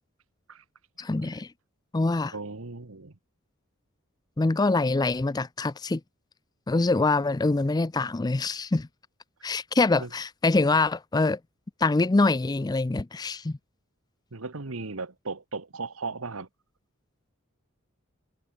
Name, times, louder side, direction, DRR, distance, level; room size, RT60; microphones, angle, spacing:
voice 1, 1.0-1.5 1.9-2.3 4.4-6.0 6.7-8.9 9.4-11.4 11.8-13.6, left 3 dB, 20° left, 0.4 m, -24 dB
voice 2, 2.3-3.1 10.0-10.1 14.3-16.5, right 3 dB, 85° right, 1.4 m, -36 dB
head